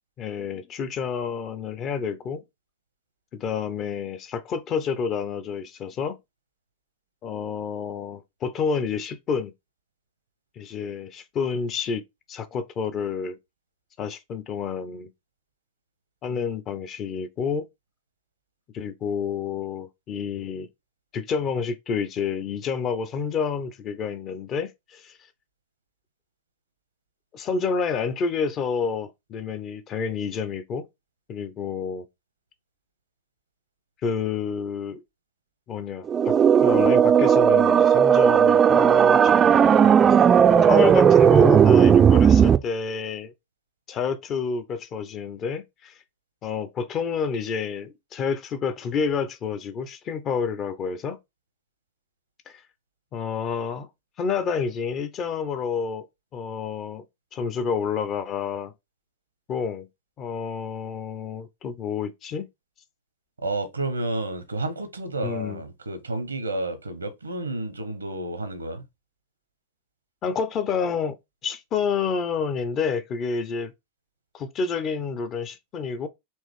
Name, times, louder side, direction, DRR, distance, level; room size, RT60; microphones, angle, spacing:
voice 1, 0.2-2.4 3.3-6.2 7.2-9.5 10.6-12.0 12.3-13.4 14.0-15.1 16.2-17.6 18.7-20.7 21.1-25.2 27.3-30.9 31.3-32.1 34.0-35.0 35.7-39.4 40.7-43.3 43.9-45.9 46.4-51.2 52.5-52.6 53.1-53.9 54.2-56.1 56.3-57.0 57.3-58.7 59.5-59.9 60.2-62.5 65.2-65.6 70.2-71.2 71.4-73.7 74.3-76.1, left 6 dB, 30° left, 0.7 m, -29 dB
sound 1, 36.1-42.6, right 8 dB, 25° right, 0.4 m, -16 dB
voice 2, 63.4-68.8, right 2 dB, 80° right, 0.9 m, -30 dB
4.5 x 3.1 x 3.2 m
figure-of-eight pair, 90°, 0 cm